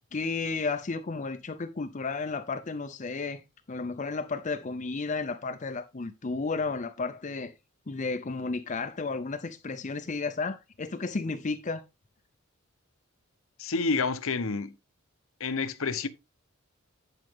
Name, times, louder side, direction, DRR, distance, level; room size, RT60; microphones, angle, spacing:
voice 1, 0.1-3.4 3.7-7.5 7.9-11.8, left 4 dB, 35° left, 0.5 m, -33 dB
voice 2, 13.6-14.7 15.4-16.1, left 4 dB, 70° left, 0.9 m, -29 dB
11.0 x 5.2 x 3.6 m
head